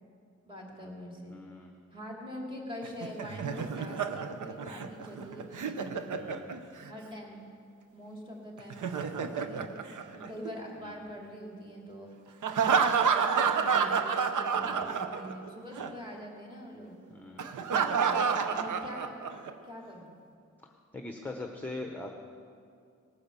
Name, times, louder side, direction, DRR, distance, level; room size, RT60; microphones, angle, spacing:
voice 1, 0.5-1.4 1.9-6.0 6.9-7.4 7.9-12.1 12.6-12.9 13.4-17.0 17.5-19.2 19.6-20.1, equal, 15° right, -2 dB, 2.9 m, -44 dB
voice 2, 1.3-1.7 6.2-6.5 10.8-11.0 14.6-14.9 15.8-16.0 17.1-17.6 20.6-22.1, left 2 dB, 5° left, 3 dB, 0.8 m, -42 dB
Laughter, 2.8-6.9 8.6-10.7 12.4-15.5 15.7-15.9 17.4-19.5, right 6 dB, 85° right, 0.9 m, -29 dB
18.5 x 10.0 x 6.8 m, 2.3 s
wide cardioid pair, 170°, 30 cm